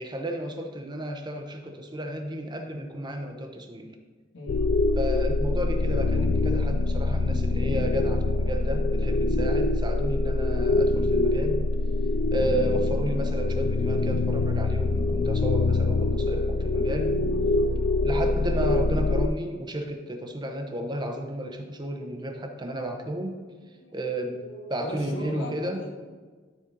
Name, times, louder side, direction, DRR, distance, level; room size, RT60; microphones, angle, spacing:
voice 1, 0.0-4.0 5.0-11.7 12.3-17.2 18.0-23.4 23.9-24.4 24.7-25.8, right 1 dB, 25° right, 4 dB, 0.8 m, -32 dB
voice 2, 4.3-4.8 8.5-8.7 23.8-26.0, equal, 90° left, 1 dB, 1.4 m, -40 dB
sound 1, 4.5-19.3, left 2 dB, 55° left, 0.3 m, -24 dB
12.5 x 4.2 x 3.9 m, 1.4 s
head